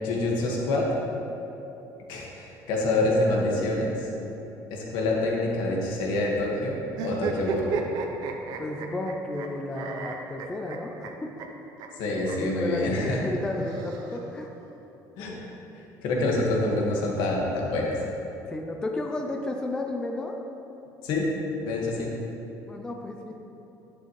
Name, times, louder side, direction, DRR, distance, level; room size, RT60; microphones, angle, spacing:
voice 1, 0.0-0.9 2.1-4.1 4.7-7.7 12.0-13.2 15.2-15.4 16.0-18.0 21.0-21.3 21.6-22.1, left 2 dB, 75° left, -2 dB, 1.7 m, -26 dB
sound 1, 6.9-9.5 9.8-11.1 11.4-11.5 11.8-11.9 12.2-12.4 13.4-14.4, right 6 dB, 55° right, 0.7 m, -33 dB
voice 2, 8.6-11.3 12.4-14.5 18.5-20.4 22.7-23.4, left 2 dB, 10° left, 2 dB, 0.4 m, -32 dB
10.0 x 8.1 x 3.2 m, 3.0 s
cardioid pair, 175°, 8 cm